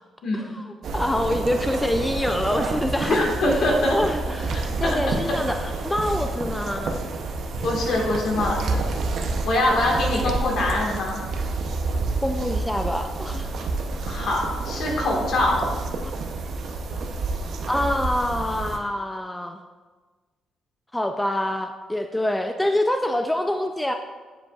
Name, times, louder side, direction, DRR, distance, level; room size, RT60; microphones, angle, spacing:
voice 1, 0.3-0.6 0.9-7.0 12.2-13.5 16.0-16.1 17.7-19.6 20.9-23.9, left 1 dB, 10° left, 6 dB, 0.3 m, -26 dB
sound 1, 0.8-18.8, right 3 dB, 65° right, 0.7 m, -29 dB
voice 2, 3.1-4.0 4.8-5.0 7.6-8.8 9.4-11.2 14.1-15.6, left 1 dB, 65° left, -1 dB, 1.6 m, -23 dB
9.4 x 5.1 x 2.4 m, 1.4 s
cardioid pair, 90°, 0 cm